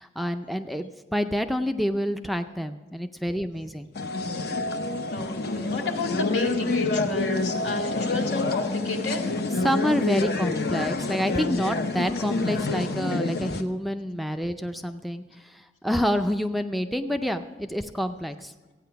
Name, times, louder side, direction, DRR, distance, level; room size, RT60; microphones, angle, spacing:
voice 1, 0.0-3.9 9.6-18.5, equal, ahead, 7 dB, 0.4 m, -28 dB
sound 1, 3.9-13.6, left 3 dB, 60° left, 0.7 m, -27 dB
voice 2, 5.1-9.2, left 2 dB, 90° left, 1 dB, 2.2 m, -31 dB
15.0 x 9.2 x 5.8 m, 1.2 s
head